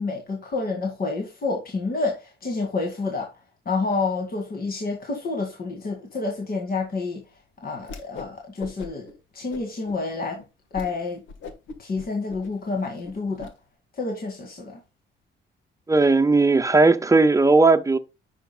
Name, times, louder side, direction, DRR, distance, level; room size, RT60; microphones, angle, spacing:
voice 1, 0.0-3.3 3.7-7.3 7.6-10.4 10.7-11.2 11.8-13.5 13.9-14.8, left 3 dB, 50° left, 2.1 m, -29 dB
Whoosh swoosh swish, 7.8-8.3 8.6-9.1 9.5-10.0 10.4-10.5 10.7-10.9 11.3-13.5, left 4 dB, 80° left, 1.4 m, -40 dB
voice 2, 15.9-18.0, right 3 dB, 15° right, 0.9 m, -17 dB
10.0 x 6.0 x 2.2 m
cardioid pair, 90°, 20 cm